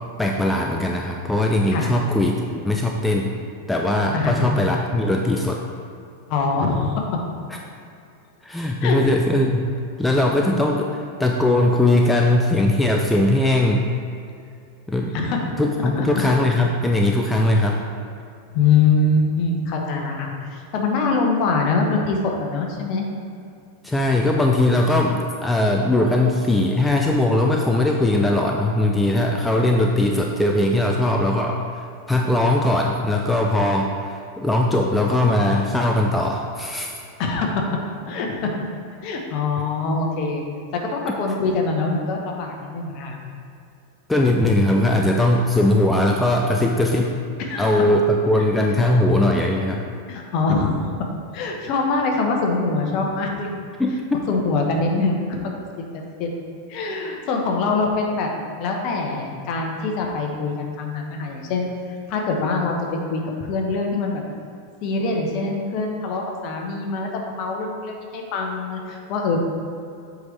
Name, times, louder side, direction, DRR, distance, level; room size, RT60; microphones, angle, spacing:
voice 1, 0.2-3.4 3.7-5.6 8.4-9.7 10.0-13.9 14.9-15.2 15.6-17.8 23.8-36.9 44.1-47.2 47.6-49.9 53.8-54.0, left 1 dB, 5° left, 1 dB, 0.4 m, -20 dB
voice 2, 6.3-7.1 8.8-9.0 15.1-15.5 16.0-16.2 18.5-23.0 37.2-37.7 38.1-38.5 39.0-40.4 40.7-43.2 47.4-47.7 50.1-50.7 51.3-53.5 54.3-55.4 55.9-56.3 56.7-58.3 58.6-61.7 62.1-62.8 63.1-64.2 64.8-69.4, left 4 dB, 40° left, 1 dB, 1.0 m, -23 dB
7.8 x 5.1 x 3.2 m, 2.5 s
figure-of-eight pair, 90°, 0 cm